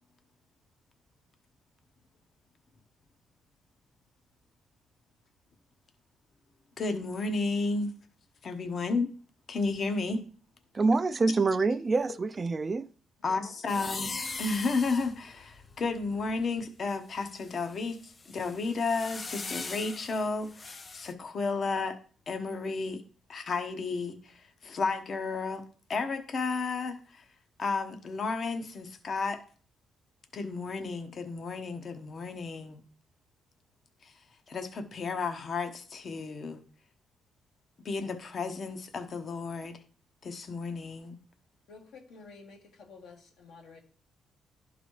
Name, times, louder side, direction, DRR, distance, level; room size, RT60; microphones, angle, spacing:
voice 1, 6.8-7.9 8.4-9.1 9.5-10.2 13.2-14.1 14.4-22.0 22.3-23.0 23.3-25.6 25.9-27.2 27.6-29.4 30.3-32.8 34.0-34.1 34.5-36.6 37.8-39.8 40.2-41.2, left 3 dB, 50° left, 0.9 m, -32 dB
voice 2, 10.7-12.9, right 3 dB, 30° right, 0.3 m, -26 dB
voice 3, 13.2-13.9 41.7-43.8, left 4 dB, 80° left, 1.8 m, -51 dB
sound 1, 13.7-16.6 17.2-21.1, left 3 dB, 30° left, 0.5 m, -41 dB
11.5 x 4.0 x 3.1 m
cardioid pair, 90°, 0 cm